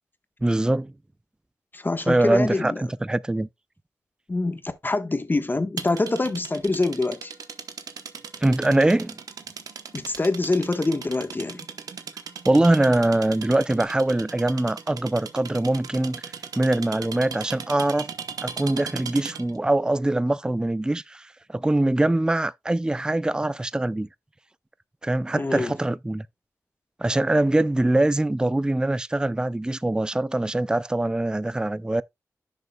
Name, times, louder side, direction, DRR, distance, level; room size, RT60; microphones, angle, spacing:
voice 1, 0.4-0.9 2.1-3.5 8.4-9.2 12.5-16.3 16.6-18.1 18.4-24.1 25.0-26.3 27.0-32.0, right 1 dB, 15° right, 0.4 m, -23 dB
voice 2, 1.7-2.8 4.3-7.3 9.9-11.7 25.4-25.7, left 2 dB, 35° left, 1.2 m, -25 dB
sound 1, 5.8-19.6, right 6 dB, 90° right, 0.9 m, -38 dB
10.5 x 6.7 x 2.3 m
cardioid pair, 55°, 6 cm